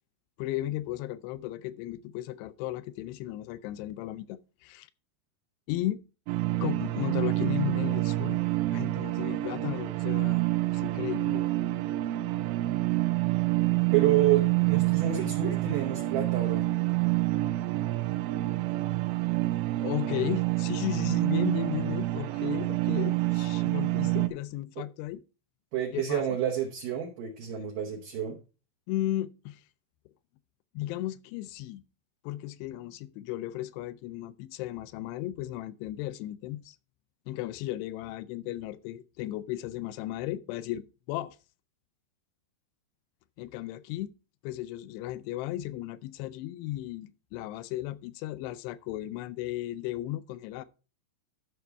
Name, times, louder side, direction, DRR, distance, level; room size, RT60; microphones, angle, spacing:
voice 1, 0.4-4.9 5.7-6.0 6.6-8.4 8.7-11.5 19.8-25.2 25.9-26.4 28.9-29.6 30.7-31.8 32.2-36.8 37.3-41.4 43.4-44.1 44.4-50.6, left 15 dB, 85° left, 2.5 m, -35 dB
sound 1, 6.3-24.3, right 18 dB, 90° right, 2.9 m, -27 dB
voice 2, 13.9-16.7 23.5-23.7 24.8-24.9 25.7-28.4, right 11 dB, 70° right, 2.2 m, -29 dB
12.5 x 5.8 x 3.4 m
omnidirectional pair, 4.9 m